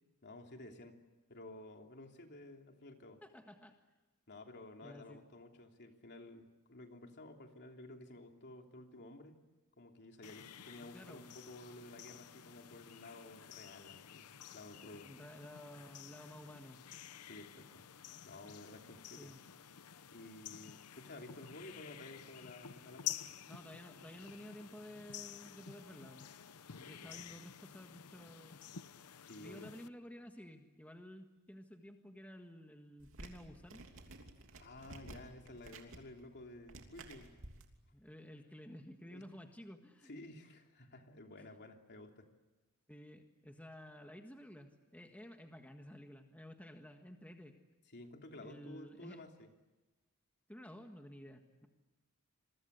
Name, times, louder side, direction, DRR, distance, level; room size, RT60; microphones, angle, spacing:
voice 1, 0.2-0.9 1.3-3.2 4.3-9.4 9.8-15.1 17.3-17.8 18.2-19.3 20.1-23.2 27.0-27.3 29.2-29.7 34.6-37.3 39.0-39.2 40.0-42.3 47.9-49.5, left 2 dB, 50° left, 3 dB, 3.1 m, -53 dB
voice 2, 3.2-3.8 4.8-5.2 10.9-11.3 15.0-16.8 19.2-19.4 23.5-26.3 26.8-28.6 29.4-33.8 37.9-40.1 41.4-41.5 42.9-47.5 48.4-49.2 50.5-51.7, equal, 5° left, 4 dB, 1.6 m, -53 dB
sound 1, 10.2-29.9, left 10 dB, 85° left, 0.8 m, -50 dB
sound 2, 33.0-37.6, right 2 dB, 65° right, 3.0 m, -53 dB
27.5 x 23.0 x 8.2 m, 1.1 s
head